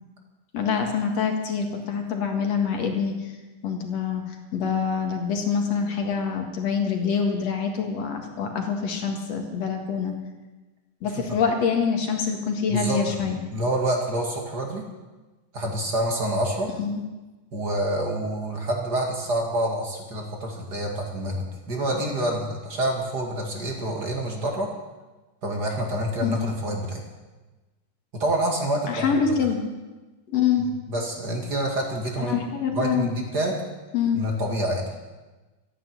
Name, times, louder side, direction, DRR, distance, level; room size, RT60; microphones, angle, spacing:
voice 1, 0.5-3.3 3.6-10.1 11.0-13.4 16.8-17.0 26.2-26.5 28.9-29.6 30.3-30.7 32.2-33.1 33.9-34.2, left 6 dB, 60° left, 3 dB, 2.8 m, -25 dB
voice 2, 12.7-13.2 13.5-14.8 15.5-16.7 17.5-24.7 25.4-27.0 28.1-29.1 30.9-32.4 32.7-33.6 34.1-34.8, right 1 dB, 35° right, 1 dB, 2.4 m, -27 dB
13.0 x 11.0 x 9.0 m, 1.2 s
omnidirectional pair, 3.5 m